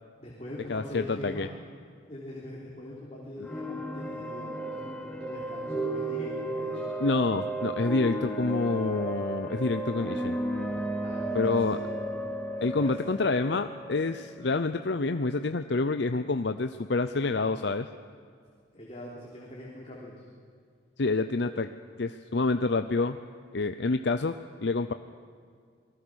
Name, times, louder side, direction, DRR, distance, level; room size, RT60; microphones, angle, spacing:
voice 1, 0.2-1.5 2.1-6.9 11.0-12.0 12.6-12.9 18.7-20.1, left 1 dB, 35° left, -4 dB, 3.6 m, -43 dB
voice 2, 0.7-1.5 7.0-10.4 11.3-11.8 12.6-17.9 21.0-21.7 22.0-23.2 23.5-24.9, left 3 dB, 60° left, 9 dB, 0.6 m, -27 dB
sound 1, 3.4-15.1, right 1 dB, 5° left, 2.3 m, -34 dB
27.5 x 20.0 x 6.4 m, 2.1 s
head